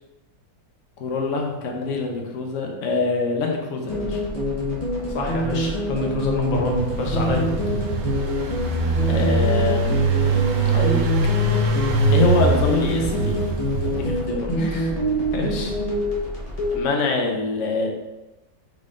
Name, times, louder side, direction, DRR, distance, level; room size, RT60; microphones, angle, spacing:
voice 1, 1.0-4.2 7.3-7.5 9.1-9.9 10.7-11.1 12.1-13.3 13.8-14.5 16.7-17.9, left 3 dB, 60° left, 1 dB, 0.8 m, -24 dB
sound 1, 3.9-16.8, left 1 dB, 30° left, 0.7 m, -26 dB
voice 2, 5.1-7.4 14.5-14.9 15.3-15.7, left 1 dB, 90° left, 0 dB, 1.7 m, -26 dB
Engine, 6.4-14.4, right 3 dB, 75° right, 1.3 m, -23 dB
4.0 x 3.6 x 3.7 m, 1.0 s
omnidirectional pair, 2.0 m